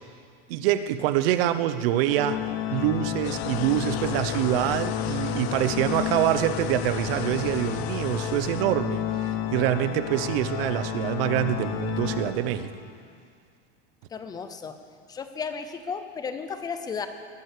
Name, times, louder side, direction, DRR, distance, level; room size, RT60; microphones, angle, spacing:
voice 1, 0.5-12.7, right 12 dB, 65° right, 12 dB, 0.9 m, -25 dB
Organ, 2.1-12.9, left 9 dB, 40° left, 0.9 m, -31 dB
sound 1, 3.2-8.6, left 13 dB, 85° left, 0.8 m, -37 dB
voice 2, 14.1-14.7 15.1-17.1, left 5 dB, 10° left, 9 dB, 0.5 m, -34 dB
20.0 x 9.2 x 6.7 m, 2.1 s
supercardioid pair, 175°, 31 cm